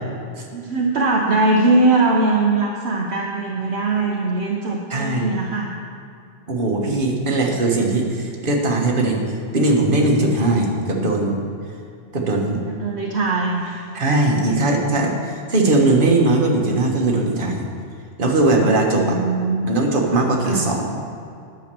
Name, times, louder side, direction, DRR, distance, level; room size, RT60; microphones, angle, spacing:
voice 1, 0.5-5.7 12.7-13.8 18.9-19.7 20.4-20.7, right 2 dB, 60° right, -1 dB, 1.1 m, -21 dB
voice 2, 4.9-5.3 6.5-9.2 9.5-11.5 12.1-12.6 13.9-17.7 18.2-19.2 19.6-21.0, right 2 dB, 45° right, 0 dB, 1.5 m, -19 dB
10.5 x 6.5 x 6.8 m, 2.4 s
omnidirectional pair, 1.3 m